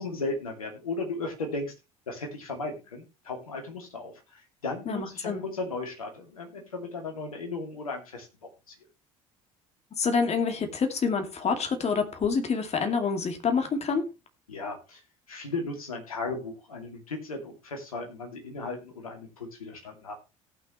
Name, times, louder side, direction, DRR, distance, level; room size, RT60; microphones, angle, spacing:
voice 1, 0.0-1.7 2.1-8.3 8.7-8.8 14.5-15.0 15.3-20.1, left 3 dB, 85° left, 3 dB, 2.6 m, -36 dB
voice 2, 4.9-5.4 10.0-14.1, left 5 dB, 35° left, 6 dB, 2.4 m, -27 dB
18.5 x 6.2 x 3.1 m, 0.28 s
figure-of-eight pair, 60°, 18 cm